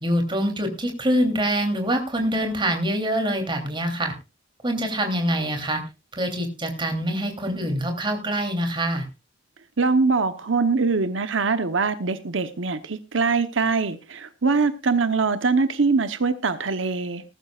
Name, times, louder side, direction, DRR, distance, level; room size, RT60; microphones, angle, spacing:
voice 1, 0.0-4.1 4.6-5.8 6.1-9.0, equal, 25° right, 4 dB, 3.2 m, -25 dB
voice 2, 9.8-17.2, right 4 dB, 75° right, 10 dB, 0.9 m, -23 dB
20.0 x 12.0 x 2.4 m, 0.28 s
head